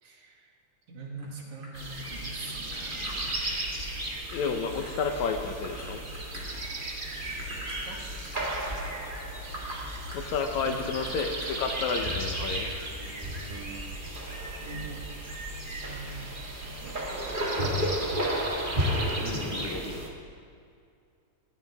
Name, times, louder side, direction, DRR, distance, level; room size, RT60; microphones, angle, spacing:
voice 1, 0.0-0.6 0.9-3.5 7.9-8.1 10.6-10.8 14.6-15.1 15.7-17.8, right 3 dB, 70° right, -1 dB, 3.5 m, -44 dB
sound 1, 1.2-6.7 7.1-7.9 8.1-8.7 9.1-9.3 9.5-9.8 10.1-11.5, right 1 dB, 35° right, 4.0 m, -45 dB
sound 2, 1.7-20.1, right 1 dB, 20° right, 1.6 m, -33 dB
voice 2, 4.3-6.0 10.1-12.7 19.2-20.2, left 5 dB, 75° left, 4 dB, 2.2 m, -31 dB
20.0 x 16.0 x 3.6 m, 2.3 s
omnidirectional pair, 3.4 m